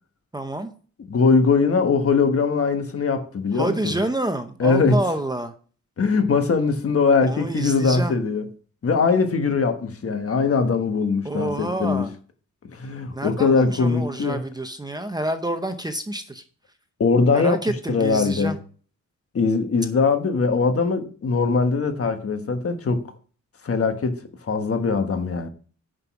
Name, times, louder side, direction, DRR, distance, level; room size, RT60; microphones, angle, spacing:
voice 1, 0.3-0.7 3.5-5.5 7.2-8.2 11.2-12.1 13.1-16.4 17.3-18.6, right 1 dB, 15° right, 0.7 m, -28 dB
voice 2, 1.1-4.0 4.6-5.0 6.0-8.5 8.8-12.0 12.7-14.4 17.0-17.6 17.9-18.6 19.3-23.0 23.6-25.5, left 4 dB, 50° left, 1.3 m, -21 dB
10.0 x 5.3 x 5.8 m
wide cardioid pair, 155°, 30 cm